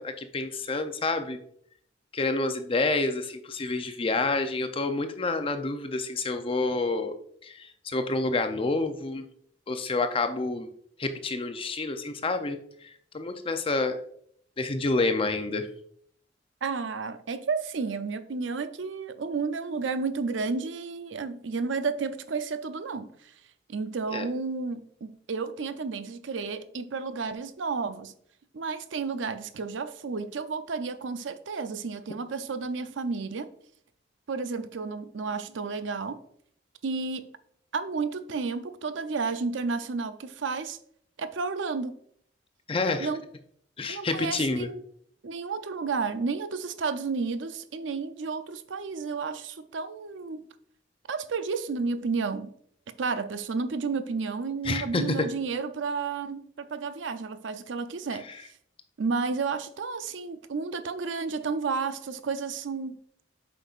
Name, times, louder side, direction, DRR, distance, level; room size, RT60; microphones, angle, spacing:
voice 1, 0.0-1.4 2.1-7.1 7.4-9.2 9.7-10.7 11.0-14.0 14.6-15.7 24.1-24.3 42.7-43.1 43.8-44.7 54.6-55.3, left 3 dB, 30° left, 0.5 m, -28 dB
voice 2, 16.6-23.3 23.7-28.1 28.5-33.5 34.3-36.2 36.8-37.3 37.7-40.8 41.2-41.9 43.0-43.2 43.9-44.8 45.2-50.4 51.1-52.5 53.0-58.3 59.0-63.0, right 4 dB, 80° right, 0.5 m, -32 dB
7.7 x 5.3 x 2.4 m
head